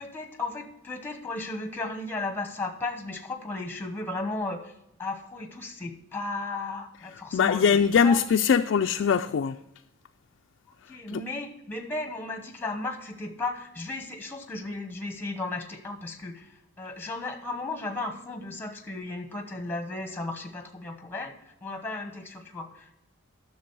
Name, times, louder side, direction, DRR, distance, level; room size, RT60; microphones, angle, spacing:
voice 1, 0.0-4.7 5.0-8.2 10.9-23.0, left 2 dB, 10° left, 1.0 m, -35 dB
voice 2, 7.3-9.6 11.1-11.2, left 6 dB, 65° left, 0.3 m, -22 dB
10.5 x 6.8 x 4.6 m
head